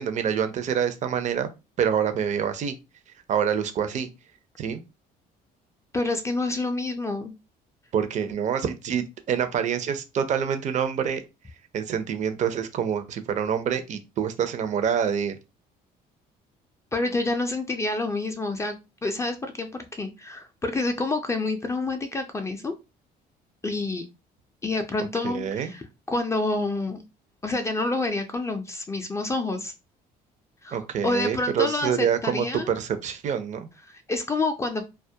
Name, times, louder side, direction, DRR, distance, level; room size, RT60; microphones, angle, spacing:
voice 1, 0.0-1.5 1.8-2.8 3.3-4.1 4.6-4.8 7.9-11.2 11.7-15.4 25.2-25.7 30.7-33.7, right 8 dB, 45° right, 9 dB, 0.5 m, -26 dB
voice 2, 5.9-7.3 16.9-18.8 19.0-22.7 23.6-24.1 24.6-27.0 27.4-29.7 30.6-32.7 33.9-34.9, left 2 dB, 15° left, 6 dB, 0.3 m, -28 dB
2.2 x 2.0 x 2.7 m, 0.26 s
cardioid pair, 110°, 17 cm